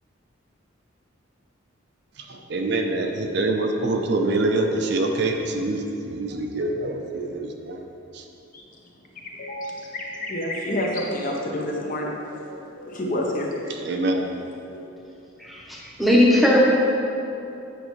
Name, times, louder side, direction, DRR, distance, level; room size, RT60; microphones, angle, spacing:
voice 1, 2.2-7.8 8.1-8.2 13.7-14.3, right 2 dB, 55° right, 3 dB, 0.5 m, -25 dB
voice 2, 9.1-13.9 14.7-14.8, left 1 dB, 40° left, -1 dB, 0.8 m, -29 dB
voice 3, 15.4-16.6, left 1 dB, ahead, -4 dB, 0.8 m, -18 dB
8.7 x 5.4 x 3.1 m, 2.8 s
head